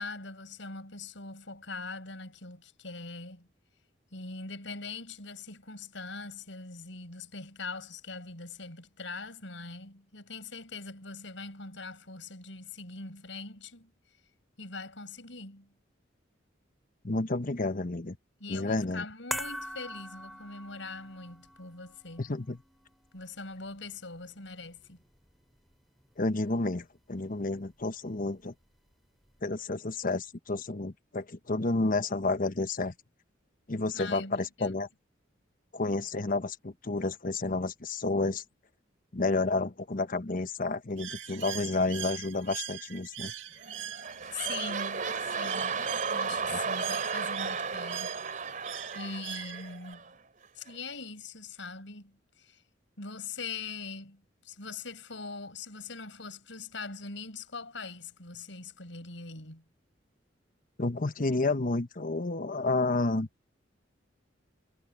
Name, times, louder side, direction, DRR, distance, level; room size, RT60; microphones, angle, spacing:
voice 1, 0.0-3.5 4.1-13.9 14.6-15.7 18.4-22.3 23.1-25.0 33.9-34.8 44.3-45.8 46.1-48.1 48.9-50.2 50.6-52.6 53.0-59.6, left 4 dB, 75° left, 7.8 m, -42 dB
voice 2, 17.0-18.2 18.5-19.0 22.2-22.6 26.2-28.5 29.4-32.9 33.7-34.9 35.7-38.4 39.1-43.3 46.3-46.6 60.8-63.3, left 2 dB, 45° left, 1.1 m, -30 dB
sound 1, 19.3-25.7 26.0-26.1, equal, ahead, 4.1 m, -43 dB
Bird, 41.0-49.9, right 11 dB, 80° right, 2.0 m, -41 dB
sound 2, 43.6-50.1 50.7-50.8, right 5 dB, 45° right, 3.7 m, -34 dB
head